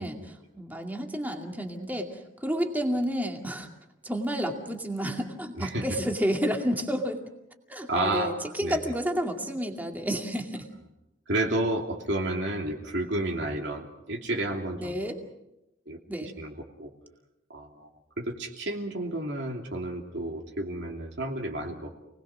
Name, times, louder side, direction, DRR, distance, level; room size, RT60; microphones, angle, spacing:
voice 1, 0.0-3.7 4.0-7.2 7.7-10.6 14.8-15.2 16.1-16.3, equal, 10° right, 2 dB, 2.3 m, -30 dB
voice 2, 7.9-8.3 8.6-8.8 11.3-15.0 15.9-16.9 17.5-17.9 18.2-21.9, right 1 dB, 65° right, 1 dB, 2.9 m, -31 dB
29.0 x 20.0 x 6.2 m, 0.91 s
head